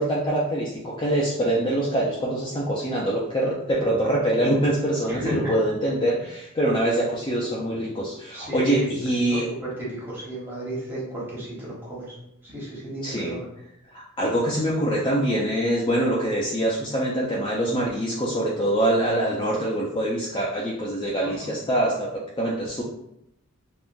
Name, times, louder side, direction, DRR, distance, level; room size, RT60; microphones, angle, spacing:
voice 1, 0.0-9.5 13.0-13.4 13.9-22.8, right 1 dB, 20° left, -4 dB, 0.3 m, -24 dB
voice 2, 5.0-5.5 8.3-8.9 9.2-12.1 12.4-13.5 21.2-21.5, right 2 dB, 10° right, -7 dB, 1.0 m, -33 dB
3.6 x 2.4 x 2.6 m, 0.80 s
head